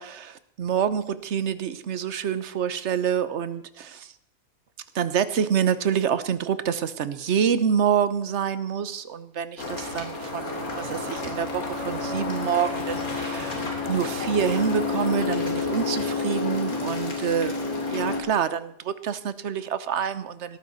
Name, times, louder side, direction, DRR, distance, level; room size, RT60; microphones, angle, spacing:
voice 1, 0.0-4.1 4.9-13.6 13.9-20.6, right 8 dB, 55° right, 13 dB, 1.2 m, -27 dB
sound 1, 9.6-18.2, left 4 dB, 85° left, 3.2 m, -29 dB
17.5 x 14.0 x 4.1 m, 0.69 s
omnidirectional pair, 1.5 m